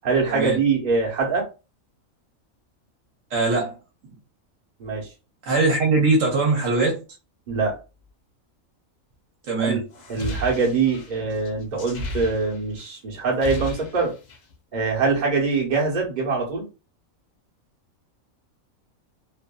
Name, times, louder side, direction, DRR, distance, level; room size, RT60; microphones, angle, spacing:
voice 1, 0.0-1.5 4.8-5.1 7.5-7.8 9.6-9.8 10.1-14.1 14.7-16.7, right 4 dB, 35° right, -3 dB, 1.0 m, -23 dB
voice 2, 3.3-3.8 5.5-7.0 9.5-9.8, right 3 dB, 70° right, 0 dB, 1.2 m, -21 dB
sound 1, 9.9-12.9 13.2-14.5, left 1 dB, 75° left, 0.4 m, -34 dB
2.6 x 2.6 x 2.2 m, 0.30 s
omnidirectional pair, 1.5 m